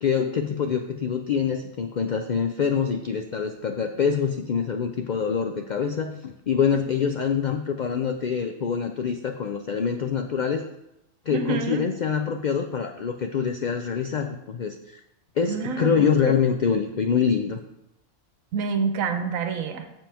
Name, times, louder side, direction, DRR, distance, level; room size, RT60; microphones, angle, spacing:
voice 1, 0.0-10.6 11.3-15.0 15.4-17.6, left 6 dB, 90° left, 6 dB, 0.4 m, -25 dB
voice 2, 11.3-11.8 15.5-15.9 18.5-19.9, right 5 dB, 90° right, 7 dB, 1.2 m, -27 dB
7.5 x 7.3 x 3.5 m, 0.87 s
omnidirectional pair, 1.4 m